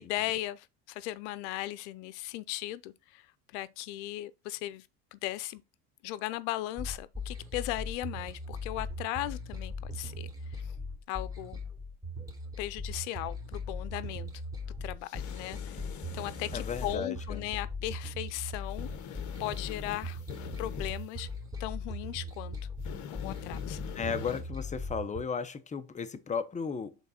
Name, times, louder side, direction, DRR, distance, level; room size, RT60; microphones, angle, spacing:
voice 1, 0.0-3.3 3.5-5.6 6.0-10.7 11.1-11.6 12.6-14.3 14.8-15.8 16.1-18.9 19.4-20.2 20.6-21.3 21.6-22.5 23.1-23.8, left 15 dB, 85° left, 0.7 m, -37 dB
sound 1, 6.8-25.2, left 2 dB, 10° right, 3.0 m, -39 dB
sound 2, 15.0-17.0 18.7-21.1 22.8-24.4, left 8 dB, 60° left, 1.5 m, -44 dB
voice 2, 16.5-17.5 24.0-26.9, left 6 dB, 20° left, 1.0 m, -35 dB
8.1 x 4.0 x 4.3 m
supercardioid pair, 105°, 34 cm